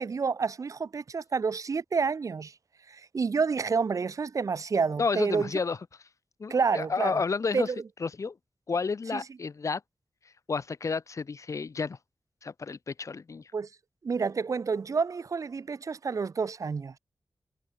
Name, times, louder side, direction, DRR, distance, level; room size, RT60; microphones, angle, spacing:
voice 1, 0.0-2.5 2.9-5.5 6.5-7.2 7.5-7.7 9.1-9.2 13.5-13.7 14.0-16.9, right 5 dB, 70° right, 1.4 m, -29 dB
voice 2, 5.0-5.8 6.4-7.7 8.0-8.3 8.7-9.8 10.5-12.0 12.4-13.4, left 4 dB, 65° left, 1.2 m, -31 dB
cardioid pair, 50°, 6 cm